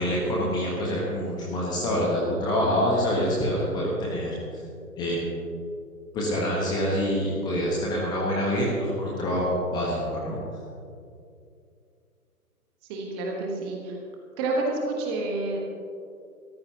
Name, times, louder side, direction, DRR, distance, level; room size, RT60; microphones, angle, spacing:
voice 1, 0.0-4.4 5.0-5.2 6.1-10.4, equal, 10° left, -4 dB, 1.2 m, -26 dB
voice 2, 12.9-14.0 14.4-15.6, right 2 dB, 15° right, 0 dB, 1.4 m, -29 dB
22.0 x 14.0 x 2.9 m, 2.4 s
figure-of-eight pair, 135°, 46 cm